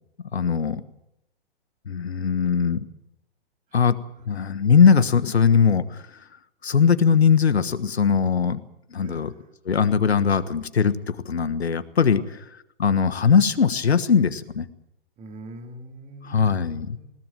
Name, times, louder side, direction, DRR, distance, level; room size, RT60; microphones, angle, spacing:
voice 1, 0.3-0.8 1.9-2.8 3.7-4.0 4.3-6.2 6.6-8.6 8.9-9.3 9.6-12.4 12.8-14.7 16.3-17.0, left 6 dB, 80° left, 12 dB, 1.4 m, -20 dB
voice 2, 9.0-9.5 12.1-12.3 15.2-17.1, right 2 dB, 20° right, 4 dB, 3.3 m, -44 dB
20.5 x 18.5 x 7.7 m, 0.82 s
figure-of-eight pair, 120°, 32 cm